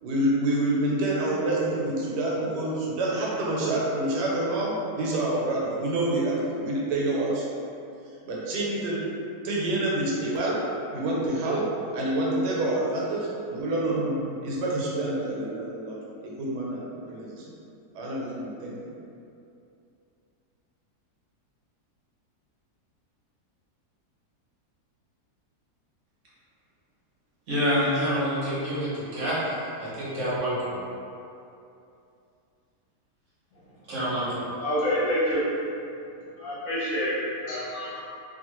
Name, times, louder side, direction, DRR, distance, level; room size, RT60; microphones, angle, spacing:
voice 1, 0.0-7.4 8.2-9.0 9.4-10.6 10.9-11.6 11.9-17.4 17.9-18.9, right 1 dB, 85° right, -4 dB, 1.3 m, -27 dB
voice 2, 27.5-30.8 33.9-34.5, equal, 60° right, -9 dB, 0.9 m, -27 dB
voice 3, 34.6-35.4 36.4-38.0, equal, 60° left, -9 dB, 1.0 m, -27 dB
2.7 x 2.4 x 2.9 m, 2.6 s
omnidirectional pair, 1.8 m